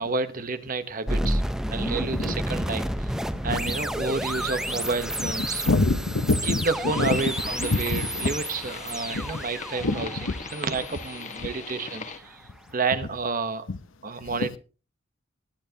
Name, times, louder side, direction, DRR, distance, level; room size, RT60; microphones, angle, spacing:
voice 1, 0.0-1.4 1.7-3.2 3.4-5.6 6.4-10.1 10.5-12.4 12.7-13.7 14.0-14.6, right 4 dB, 45° right, 0.9 m, -30 dB
sound 1, 1.1-12.1, equal, 5° right, 0.5 m, -31 dB
voice 2, 2.0-2.3 3.5-3.6 5.2-7.2 7.6-8.3 9.1-9.2 9.8-10.3 13.7-13.8 14.3-14.6, left 2 dB, 85° left, 0.9 m, -26 dB
sound 2, 6.9-12.2, left 5 dB, 40° left, 1.3 m, -40 dB
20.5 x 9.3 x 2.8 m
head